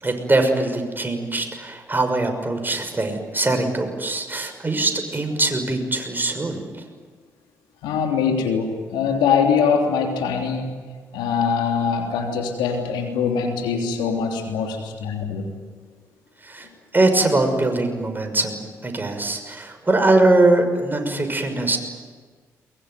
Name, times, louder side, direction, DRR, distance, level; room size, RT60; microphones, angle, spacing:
voice 1, 0.0-6.7 16.4-16.7 16.9-21.8, right 2 dB, 25° right, 5 dB, 6.2 m, -22 dB
voice 2, 7.8-10.7 11.1-15.6, left 6 dB, 75° left, 3 dB, 3.3 m, -23 dB
23.0 x 22.5 x 9.4 m, 1.5 s
hypercardioid pair, 45°, 8 cm